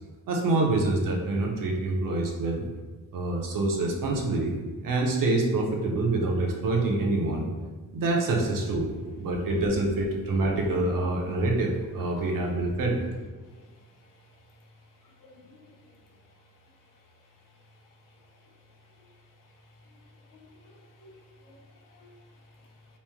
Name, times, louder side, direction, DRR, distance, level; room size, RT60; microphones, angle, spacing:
voice 1, 0.3-2.7 3.1-7.5 7.9-8.9 9.2-13.0, right 2 dB, 65° right, 0 dB, 0.6 m, -26 dB
voice 2, 15.2-15.8 19.9-20.0 20.3-21.1 21.4-21.6 21.9-22.1, left 2 dB, 65° left, 1 dB, 0.6 m, -53 dB
3.0 x 2.0 x 3.4 m, 1.3 s
wide cardioid pair, 170°, 35 cm